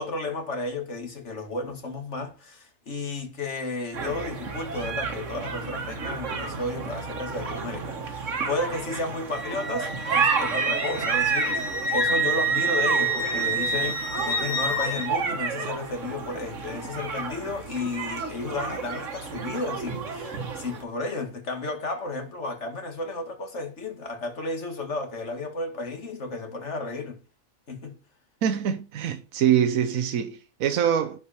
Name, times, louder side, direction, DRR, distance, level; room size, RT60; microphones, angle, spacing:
voice 1, 0.0-27.2 27.7-28.0, left 3 dB, 55° left, 2.3 m, -33 dB
sound 1, 3.9-20.8, right 5 dB, 65° right, 1.7 m, -31 dB
Wind instrument woodwind instrument, 9.3-15.1, right 2 dB, 85° left, 2.6 m, -27 dB
voice 2, 28.4-31.2, right 9 dB, 80° right, 1.2 m, -24 dB
10.5 x 5.1 x 4.3 m
omnidirectional pair, 1.4 m